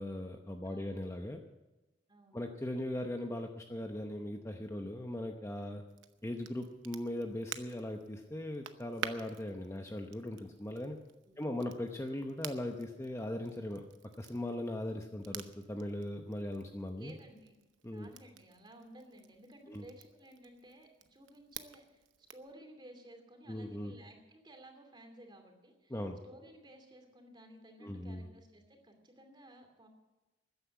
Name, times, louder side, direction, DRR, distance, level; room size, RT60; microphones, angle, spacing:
voice 1, 0.0-1.4 2.3-5.8 6.2-11.0 11.4-13.8 14.2-17.1 17.8-18.1 19.7-19.9 23.5-23.9 25.9-26.2 27.8-28.3, left 1 dB, 15° left, 4 dB, 0.8 m, -39 dB
voice 2, 0.6-1.0 2.1-2.4 11.3-11.8 16.9-17.6 17.9-22.0 22.3-25.9 26.2-29.9, right 1 dB, 25° right, 4 dB, 2.6 m, -56 dB
Crackle, 5.9-22.5, right 8 dB, 85° right, 0.9 m, -51 dB
14.0 x 9.9 x 8.3 m, 1.1 s
head